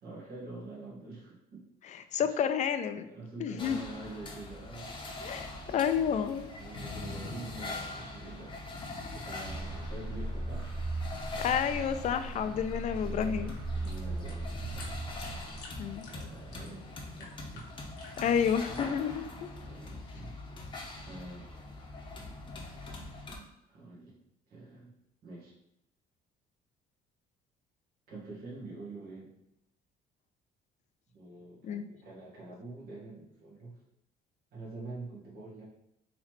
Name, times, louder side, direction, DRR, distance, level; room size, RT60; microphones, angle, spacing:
voice 1, 0.0-1.6 2.2-2.4 3.0-4.9 6.5-8.6 9.1-10.7 12.3-12.6 13.0-14.9 16.1-17.7 19.6-20.3 20.9-21.5 23.7-24.1 24.5-24.9 25.2-25.5 28.1-29.3 31.1-33.7 34.5-35.6, right 2 dB, 70° right, -6 dB, 1.5 m, -46 dB
voice 2, 1.8-3.1 3.4-3.8 5.2-6.5 11.4-13.5 15.8-16.1 18.2-19.5 31.6-31.8, left 8 dB, 45° left, 10 dB, 0.4 m, -30 dB
sound 1, 3.6-23.4, left 2 dB, 30° left, 0.7 m, -43 dB
sound 2, 9.4-16.0, right 2 dB, 10° right, 0.9 m, -38 dB
sound 3, 13.6-19.3, left 3 dB, 90° left, 1.1 m, -53 dB
3.9 x 3.1 x 3.1 m, 0.82 s
cardioid pair, 110°, 17 cm